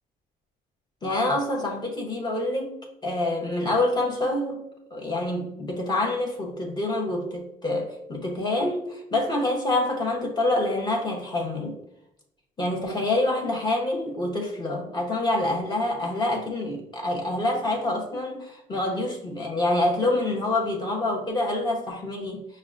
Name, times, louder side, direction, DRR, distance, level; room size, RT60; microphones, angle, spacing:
voice 1, 1.0-4.6 4.9-11.8 12.6-22.5, left 2 dB, 25° left, -1 dB, 0.8 m, -26 dB
5.8 x 2.1 x 2.5 m, 0.82 s
cardioid pair, 110°, 17 cm